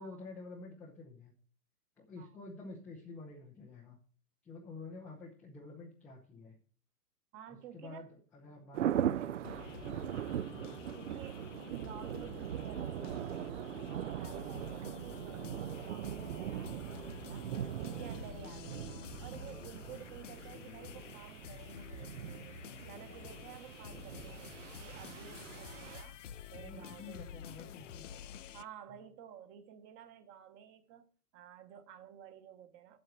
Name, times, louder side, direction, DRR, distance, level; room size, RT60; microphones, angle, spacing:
voice 1, 0.0-1.3 2.0-4.0 4.4-6.6 7.5-9.6 10.4-10.8 19.7-20.0 25.3-25.6 26.6-28.1 28.9-29.0, left 3 dB, 5° left, 0.4 m, -50 dB
voice 2, 7.3-8.0 9.5-9.6 10.9-17.5 17.8-22.5 22.8-26.2 26.5-27.2 28.5-31.1 31.3-33.0, right 9 dB, 25° right, 1.0 m, -52 dB
sound 1, 8.7-26.0, right 10 dB, 55° right, 0.5 m, -40 dB
sound 2, 9.4-28.7, left 9 dB, 55° left, 0.6 m, -49 dB
7.9 x 7.5 x 6.5 m
figure-of-eight pair, 120°, 46 cm